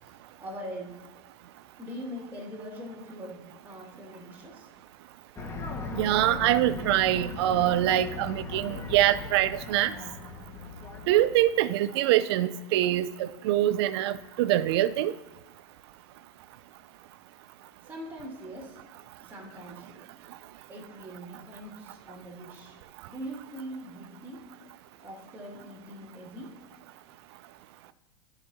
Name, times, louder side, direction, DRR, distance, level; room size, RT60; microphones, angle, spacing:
voice 1, 0.0-1.0 1.8-4.7 17.8-18.8 19.2-20.0 20.7-22.8 23.1-24.5 25.0-26.6, equal, 15° right, -1 dB, 2.3 m, -42 dB
sound 1, 5.4-11.7, left 3 dB, 20° left, 1.6 m, -38 dB
voice 2, 5.9-9.9 11.1-15.1, right 13 dB, 60° right, 14 dB, 0.5 m, -24 dB
15.0 x 5.1 x 2.8 m, 1.2 s
hypercardioid pair, 105°, 15 cm